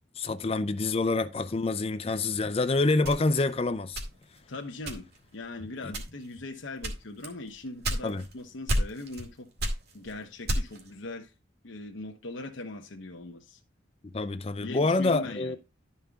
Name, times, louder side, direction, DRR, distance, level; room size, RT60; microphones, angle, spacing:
voice 1, 0.2-4.0 5.8-5.9 8.0-8.3 14.1-15.6, left 3 dB, 30° left, 0.4 m, -27 dB
sound 1, 3.0-4.4 4.9-5.3 5.9-6.3 6.8-8.3 8.7-9.3 9.6-10.9, equal, 55° right, 2.2 m, -31 dB
voice 2, 4.5-9.5 9.9-11.3 11.6-13.6 14.6-15.6, left 2 dB, 75° left, 1.0 m, -40 dB
12.0 x 5.5 x 3.6 m
head